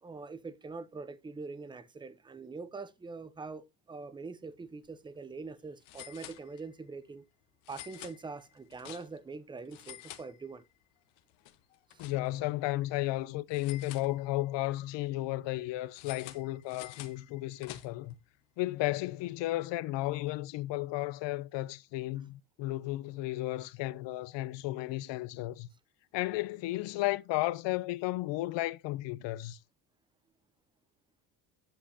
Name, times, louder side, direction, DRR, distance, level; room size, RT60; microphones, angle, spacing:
voice 1, 0.0-7.2 7.7-10.6 11.9-12.0, right 4 dB, 10° right, 0.6 m, -44 dB
sound 1, 4.7-4.9 5.1-5.2 5.8-6.9 7.6-9.3 9.6-10.8 11.2-12.5 13.5-14.6 15.9-18.2, left 15 dB, 85° left, 1.1 m, -50 dB
voice 2, 12.0-18.1 18.6-25.7 26.1-29.6, left 17 dB, 65° left, 0.7 m, -34 dB
8.9 x 7.8 x 2.7 m
cardioid pair, 130°, 47 cm